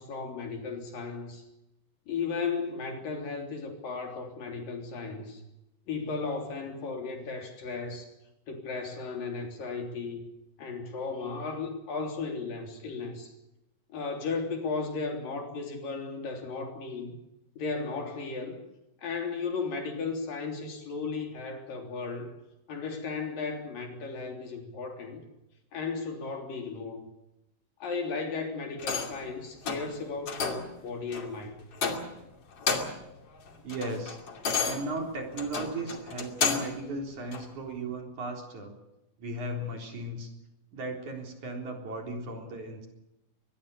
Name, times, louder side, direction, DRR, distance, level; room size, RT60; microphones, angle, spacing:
voice 1, 0.0-1.4 2.1-5.4 5.9-8.1 8.5-10.2 10.6-13.3 13.9-17.1 17.6-18.6 19.0-22.3 22.7-25.2 25.7-27.1 27.8-31.7, left 4 dB, 60° left, 4 dB, 5.0 m, -35 dB
sound 1, 28.8-29.2 29.6-29.9 30.3-30.7 31.1-31.3 31.7-32.2 32.5-33.1 33.5-36.8 37.3-37.4, left 5 dB, 40° left, 3.2 m, -31 dB
voice 2, 33.6-34.2 34.6-38.8 39.2-40.3 40.7-42.9, right 2 dB, 50° right, 3 dB, 5.2 m, -36 dB
23.5 x 21.0 x 7.0 m, 0.91 s
omnidirectional pair, 4.5 m